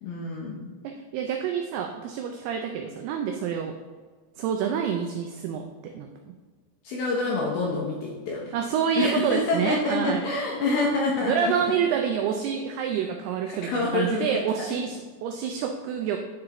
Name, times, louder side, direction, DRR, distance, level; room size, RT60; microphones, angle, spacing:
voice 1, 0.0-0.7 6.8-8.5 9.0-11.7 13.5-14.3, left 3 dB, 80° left, -2 dB, 2.2 m, -27 dB
voice 2, 0.8-3.8 4.4-6.3 8.5-10.2 11.3-16.2, right 7 dB, 85° right, 3 dB, 2.3 m, -28 dB
10.5 x 4.8 x 2.9 m, 1.4 s
omnidirectional pair, 5.2 m